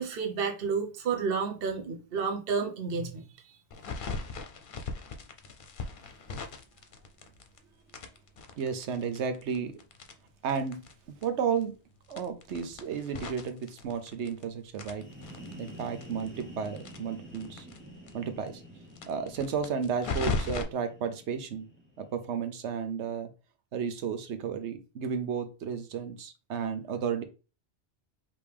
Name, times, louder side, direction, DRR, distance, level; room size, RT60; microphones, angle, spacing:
voice 1, 0.0-3.6, right 5 dB, 60° right, 1.0 m, -31 dB
sound 1, 3.7-7.6 7.9-10.9 11.2-11.3 11.6-11.7 12.1-14.4 14.7-17.8 18.1-18.2 18.4-18.5 18.9-20.6, left 4 dB, 55° left, 0.8 m, -37 dB
voice 2, 8.6-9.8 10.4-10.8 11.1-11.7 12.1-15.1 15.6-17.7 18.1-18.6 19.1-21.6 22.0-23.3 23.7-27.2, right 6 dB, 85° right, 1.0 m, -33 dB
sound 2, 14.8-22.4, equal, 10° left, 0.8 m, -49 dB
5.2 x 2.9 x 3.4 m
omnidirectional pair, 1.1 m